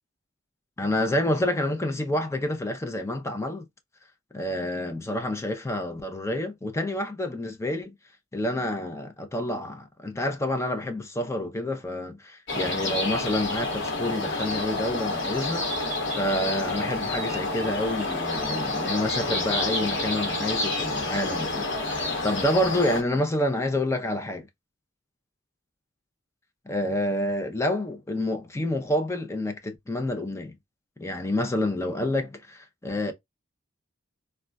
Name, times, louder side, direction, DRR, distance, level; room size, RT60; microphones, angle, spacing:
voice 1, 0.8-3.7 4.3-8.0 8.3-15.7 16.1-24.5 26.7-30.5 31.0-33.1, left 1 dB, 15° left, 0.5 m, -28 dB
sound 1, 12.5-23.0, left 2 dB, 60° left, 1.0 m, -29 dB
3.6 x 2.2 x 2.2 m
head